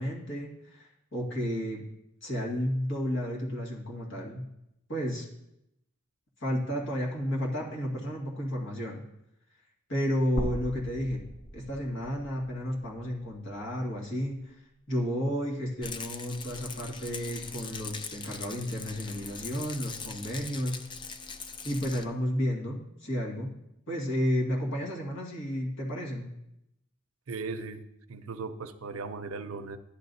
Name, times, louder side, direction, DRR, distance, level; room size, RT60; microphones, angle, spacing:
voice 1, 0.0-1.8 2.2-4.5 4.9-5.3 6.4-9.0 9.9-11.2 11.5-14.6 14.9-20.8 21.6-23.5 23.9-26.3, equal, 60° left, -2 dB, 2.1 m, -32 dB
sound 1, 10.4-14.5 14.9-15.0 16.4-16.5, right 1 dB, 80° left, 2.0 m, -40 dB
Rattle, 15.8-22.0, left 5 dB, 25° left, 0.4 m, -41 dB
voice 2, 27.3-27.8 28.1-29.8, right 4 dB, 85° right, 9 dB, 0.6 m, -37 dB
12.0 x 10.0 x 2.7 m, 0.83 s
head